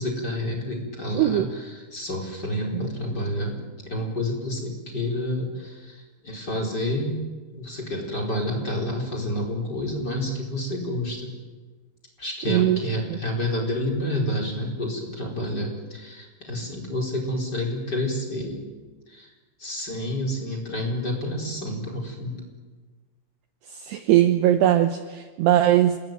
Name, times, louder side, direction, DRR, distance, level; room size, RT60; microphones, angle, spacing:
voice 1, 0.0-7.2 7.5-11.3 12.2-18.6 19.1-19.3 19.6-22.5, left 1 dB, 20° left, 2 dB, 4.7 m, -29 dB
voice 2, 1.1-1.5 2.7-2.8 12.5-12.8 13.1-13.2 23.7-26.0, right 12 dB, 75° right, 8 dB, 2.6 m, -20 dB
27.5 x 21.0 x 9.3 m, 1.4 s
omnidirectional pair, 5.7 m